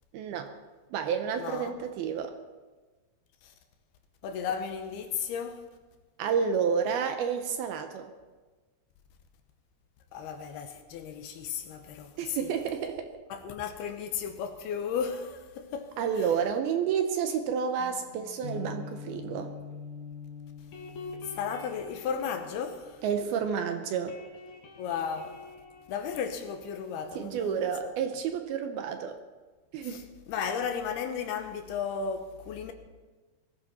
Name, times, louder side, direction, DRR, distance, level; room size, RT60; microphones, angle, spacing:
voice 1, 0.1-0.5 0.9-2.4 6.2-8.1 12.2-13.1 16.0-19.5 23.0-24.2 27.2-29.2 29.7-30.0, right 7 dB, 75° right, 2.5 m, -30 dB
voice 2, 1.4-1.8 3.4-3.5 4.2-5.7 10.1-12.5 13.3-16.0 21.3-23.0 24.8-25.4 25.9-27.7 29.8-32.7, left 7 dB, 75° left, 2.8 m, -34 dB
sound 1, 17.8-23.6 23.9-27.3, left 4 dB, 55° left, 2.6 m, -44 dB
21.0 x 14.5 x 4.3 m
omnidirectional pair, 5.0 m